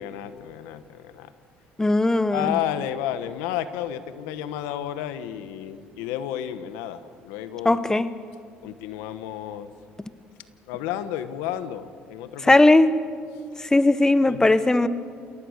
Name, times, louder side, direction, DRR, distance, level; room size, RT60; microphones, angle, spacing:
voice 1, 0.0-1.3 2.3-7.8 8.6-9.7 10.7-12.5 14.3-14.9, left 11 dB, 90° left, 12 dB, 1.1 m, -32 dB
voice 2, 1.8-2.6 7.6-8.1 12.4-12.9 13.6-14.9, left 2 dB, 15° left, 14 dB, 0.9 m, -18 dB
28.0 x 17.0 x 6.5 m, 2.2 s
supercardioid pair, 80°, 4 cm